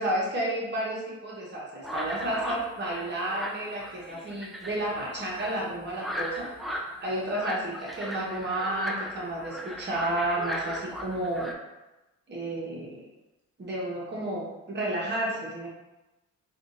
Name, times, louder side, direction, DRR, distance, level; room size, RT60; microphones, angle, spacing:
voice 1, 0.0-6.5 6.7-11.5 12.3-13.1 13.6-15.7, right 1 dB, 35° right, -4 dB, 1.2 m, -31 dB
sound 1, 1.8-11.5, equal, ahead, 0.3 m, -37 dB
3.6 x 2.5 x 2.5 m, 1.0 s
cardioid pair, 90°, 30 cm